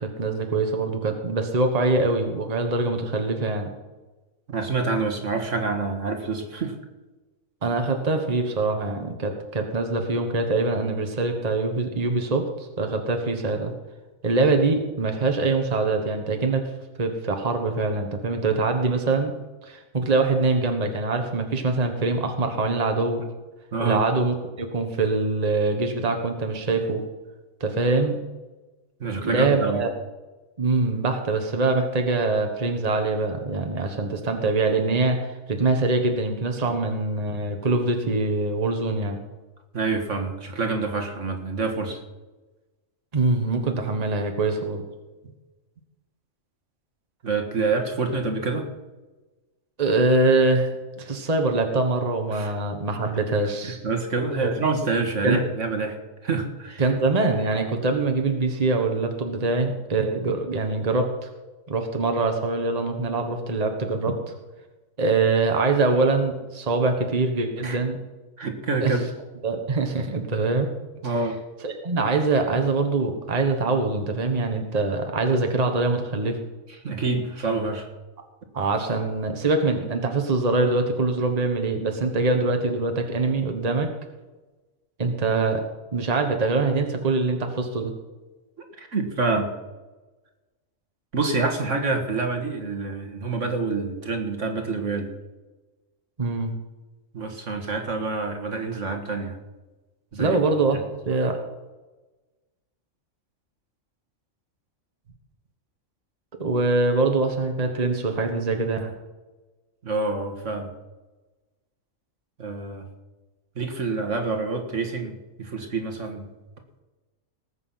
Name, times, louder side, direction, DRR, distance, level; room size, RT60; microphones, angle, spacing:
voice 1, 0.0-3.7 7.6-12.4 12.8-13.7 14.2-16.6 17.0-19.3 19.6-23.2 23.8-27.0 27.6-28.2 29.2-29.9 30.6-39.2 43.1-44.8 49.8-50.7 51.0-53.8 54.4-54.5 55.2-55.5 56.8-61.3 61.7-64.1 65.0-68.0 68.8-68.9 69.4-70.7 71.6-76.4 78.5-83.9 85.0-85.6 85.9-87.9 96.2-96.5 100.2-101.4 106.4-108.9, right 3 dB, 30° right, 5 dB, 1.4 m, -23 dB
voice 2, 4.5-6.7 23.7-24.0 29.0-29.8 39.7-42.0 47.2-48.7 52.3-52.5 53.6-55.9 56.2-56.8 67.6-67.8 68.4-69.0 71.0-71.4 76.8-77.9 88.8-89.5 91.1-95.1 97.1-99.4 100.1-100.4 109.8-110.7 112.4-112.9 113.6-116.3, right 3 dB, 65° right, 4 dB, 2.0 m, -27 dB
19.5 x 8.3 x 5.8 m, 1.2 s
omnidirectional pair, 1.4 m